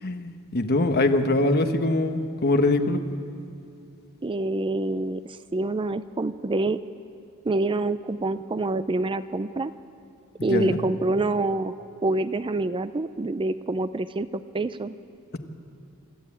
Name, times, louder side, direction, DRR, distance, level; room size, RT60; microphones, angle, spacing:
voice 1, 0.0-3.0 10.4-10.8, left 2 dB, 45° left, 6 dB, 1.2 m, -23 dB
voice 2, 4.2-6.8 7.4-9.7 10.4-11.7 12.0-14.9, right 2 dB, 25° right, 13 dB, 0.4 m, -26 dB
25.0 x 13.5 x 8.6 m, 2.4 s
head